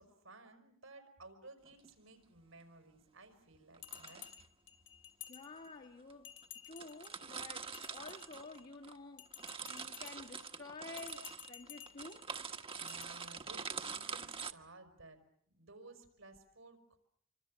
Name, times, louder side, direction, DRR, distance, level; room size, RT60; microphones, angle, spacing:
voice 1, 0.0-4.2 12.7-15.2 15.5-17.0, right 2 dB, 85° right, 5.1 m, -57 dB
sound 1, 1.6-1.9 3.7-4.4 5.3-5.4 6.1-6.2 6.4-6.5 6.7-9.0 9.3-14.5, right 5 dB, 30° right, 1.3 m, -45 dB
Bell, 3.8-5.9 6.2-7.2 7.7-8.7 9.2-10.4 10.9-12.2 12.9-13.0, left 10 dB, 65° left, 1.9 m, -53 dB
voice 2, 5.3-6.3 6.7-9.3 9.6-12.3, left 3 dB, 45° left, 1.6 m, -51 dB
27.0 x 25.0 x 7.5 m
head